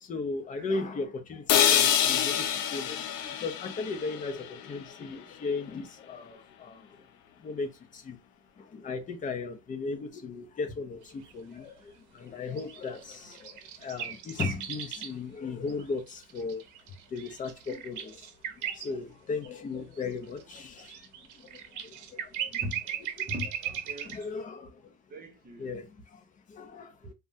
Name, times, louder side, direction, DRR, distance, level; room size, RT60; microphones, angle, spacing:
voice 1, 0.0-6.9 7.4-8.2 8.6-16.6 17.1-18.3 18.6-21.0 21.3-22.6 23.2-23.3 24.0-25.0 25.6-27.1, left 4 dB, 25° left, 0.5 m, -37 dB
voice 2, 0.5-0.9 22.6-22.8 23.3-24.1 25.1-25.8, left 1 dB, 25° right, 0.8 m, -40 dB
sound 1, 1.5-5.5, left 9 dB, 90° left, 0.5 m, -27 dB
sound 2, 11.1-11.3 12.6-15.2 15.7-18.9 19.4-19.5 20.0-24.2, right 9 dB, 60° right, 0.7 m, -37 dB
3.3 x 2.2 x 2.5 m
cardioid pair, 140°, 34 cm